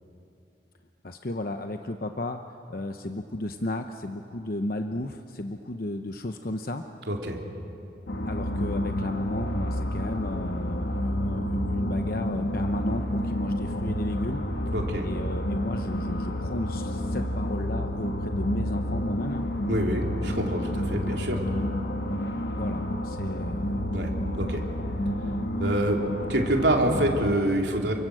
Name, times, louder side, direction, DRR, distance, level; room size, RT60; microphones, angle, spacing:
voice 1, 1.0-2.4 2.7-6.8 8.2-14.4 15.0-19.4 21.5-21.7 22.5-23.9, left 1 dB, 50° left, 6 dB, 0.9 m, -33 dB
voice 2, 7.1-7.4 14.7-15.1 19.7-21.4 23.9-24.6 25.6-26.0 26.3-27.9, right 1 dB, 70° right, 1 dB, 3.3 m, -26 dB
sound 1, 8.1-27.3, equal, 65° left, 1.5 m, -30 dB
29.0 x 24.5 x 7.9 m, 2.8 s
head